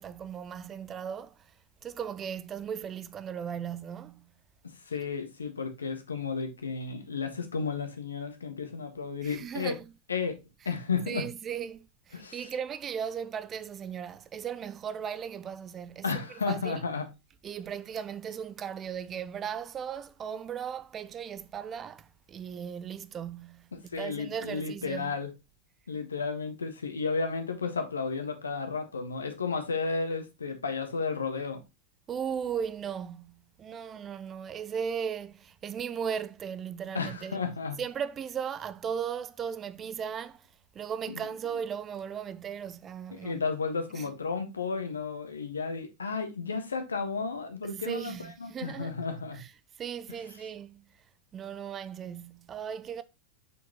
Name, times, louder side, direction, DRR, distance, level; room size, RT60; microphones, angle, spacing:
voice 1, 0.0-1.4 1.8-4.3 9.2-10.0 10.6-10.8 11.1-16.9 17.4-25.1 32.1-37.5 37.8-40.5 40.7-43.4 43.9-44.1 47.6-49.0 49.3-50.8 51.3-53.0, right 7 dB, 25° right, 0.5 m, -37 dB
voice 2, 4.9-9.8 10.1-10.4 10.6-11.2 12.1-12.5 16.0-17.0 23.7-25.3 25.9-31.6 36.9-37.8 41.1-41.2 43.2-49.4, left 5 dB, 75° left, 1.5 m, -33 dB
7.0 x 6.3 x 3.0 m
figure-of-eight pair, 90°, 0 cm